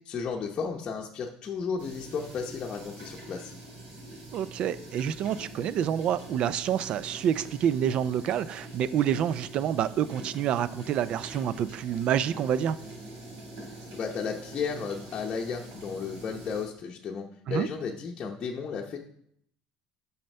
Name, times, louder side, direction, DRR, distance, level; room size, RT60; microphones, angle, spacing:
voice 1, 0.0-3.5 13.9-19.0, left 5 dB, 35° left, -2 dB, 0.8 m, -34 dB
sound 1, 1.8-16.7, right 1 dB, 75° right, 4.1 m, -45 dB
voice 2, 4.3-12.8 17.5-17.7, right 9 dB, 50° right, 16 dB, 0.4 m, -28 dB
7.5 x 5.7 x 5.4 m, 0.70 s
cardioid pair, 135°, 2 cm